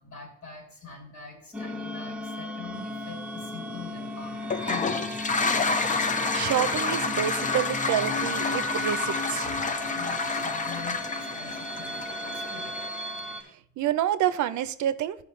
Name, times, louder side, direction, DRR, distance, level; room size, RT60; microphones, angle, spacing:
voice 1, 0.0-5.2 9.9-12.7, left 5 dB, 65° left, 0 dB, 2.9 m, -44 dB
sound 1, 1.5-13.4, left 1 dB, 5° right, 1.0 m, -36 dB
sound 2, 2.7-12.1, right 5 dB, 30° right, 0.5 m, -47 dB
Toilet flush, 4.4-13.3, left 4 dB, 25° left, 0.6 m, -29 dB
voice 2, 6.3-9.6 13.8-15.2, right 11 dB, 70° right, 13 dB, 0.6 m, -28 dB
12.5 x 5.3 x 3.1 m, 0.65 s
cardioid pair, 90°, 30 cm